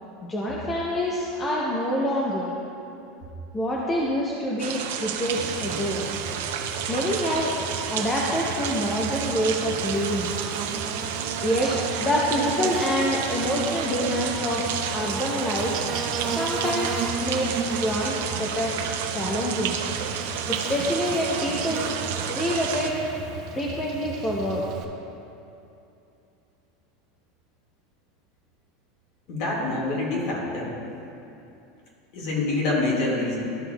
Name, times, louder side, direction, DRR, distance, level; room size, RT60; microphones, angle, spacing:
voice 1, 0.3-2.5 3.5-6.1 6.9-7.5 7.9-10.3 11.4-14.6 14.9-15.7 16.3-19.8 20.5-21.9 22.3-22.9 23.5-24.6, equal, 15° left, -4 dB, 0.6 m, -26 dB
sound 1, 4.6-22.9, right 8 dB, 75° right, 0.5 m, -31 dB
Buzz, 5.3-24.8, right 5 dB, 40° right, 0.7 m, -35 dB
voice 2, 29.3-30.7 32.1-33.4, left 2 dB, 45° left, -3 dB, 1.8 m, -26 dB
13.0 x 5.9 x 2.3 m, 2.7 s
supercardioid pair, 165°, 0 cm